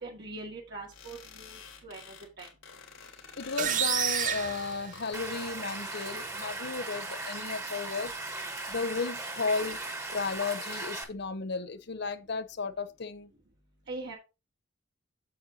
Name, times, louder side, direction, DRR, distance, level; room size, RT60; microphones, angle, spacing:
voice 1, 0.0-2.5 13.9-14.2, right 2 dB, 55° right, 2.1 m, -42 dB
sound 1, 0.9-5.3, left 6 dB, 85° left, 3.5 m, -48 dB
voice 2, 3.4-8.1 8.7-9.8 10.1-13.3, left 4 dB, 55° left, 0.8 m, -34 dB
sound 2, 3.6-5.5, right 9 dB, 40° right, 0.9 m, -30 dB
Stream, 5.1-11.0, right 2 dB, 15° right, 1.6 m, -38 dB
8.5 x 7.8 x 2.8 m
head